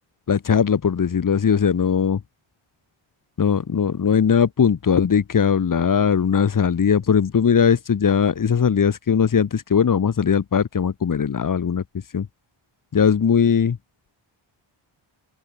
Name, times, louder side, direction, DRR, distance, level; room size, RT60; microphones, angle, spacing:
voice 1, 0.3-2.2 3.4-11.8 12.1-12.3 12.9-13.8, left 7 dB, 40° left, 5.5 m, -19 dB
open air
wide cardioid pair, 180°, 48 cm